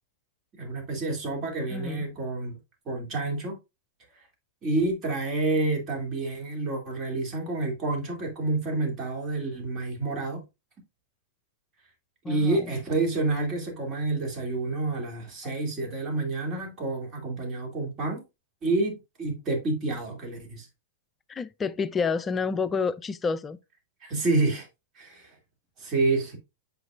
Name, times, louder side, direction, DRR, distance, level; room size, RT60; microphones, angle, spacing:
voice 1, 0.6-2.5 2.9-3.6 4.6-10.4 12.2-18.2 18.6-20.7 24.0-24.7 25.0-25.3 25.8-26.4, right 2 dB, 30° right, 2.4 m, -28 dB
voice 2, 1.7-2.0 12.2-12.7 15.4-15.5 21.3-23.6, left 5 dB, 20° left, 0.4 m, -29 dB
7.8 x 5.2 x 2.4 m
figure-of-eight pair, 100°, 0 cm